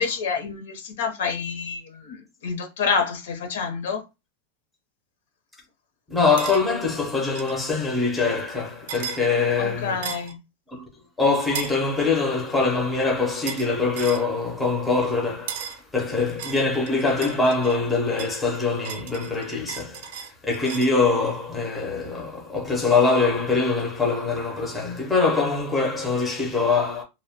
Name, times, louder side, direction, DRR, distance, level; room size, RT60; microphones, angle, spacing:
voice 1, 0.0-4.0 9.6-10.4, left 5 dB, 75° left, 0.7 m, -28 dB
voice 2, 6.1-10.1 10.7-10.8 11.2-27.0, left 4 dB, 5° left, 0.5 m, -23 dB
sound 1, 6.4-6.6 7.3-7.6 8.9-9.2 10.0-10.3 11.5-11.8 13.5-13.7 14.0-14.3 15.5-15.8 16.4-17.8 18.2-21.0, right 7 dB, 60° right, 0.4 m, -35 dB
2.6 x 2.1 x 2.8 m
supercardioid pair, 175°, 0 cm